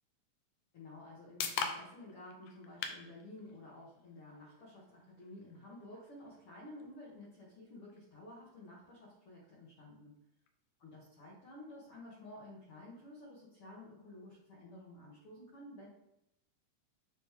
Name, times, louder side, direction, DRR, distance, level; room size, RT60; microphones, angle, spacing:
sound 1, 0.7-14.5, left 6 dB, 75° left, 1.8 m, -48 dB
voice 1, 0.7-10.1 10.8-15.9, left 1 dB, 55° left, -7 dB, 1.9 m, -52 dB
9.0 x 3.1 x 3.5 m, 0.83 s
omnidirectional pair, 3.8 m